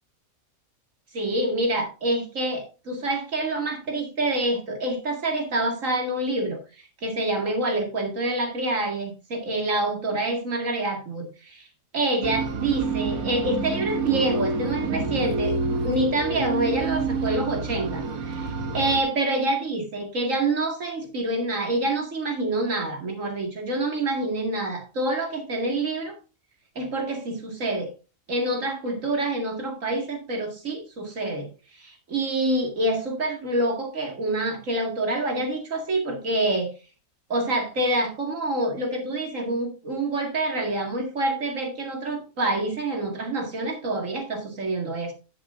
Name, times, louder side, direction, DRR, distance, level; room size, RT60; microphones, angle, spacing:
voice 1, 1.1-6.6 7.0-11.7 11.9-15.6 15.8-26.1 26.8-27.9 28.3-31.5 31.8-36.7 37.3-45.1, right 2 dB, 60° right, 2.5 m, -27 dB
sound 1, 12.2-19.0, right 3 dB, 85° right, 1.5 m, -28 dB
13.5 x 7.6 x 2.6 m
omnidirectional pair, 1.5 m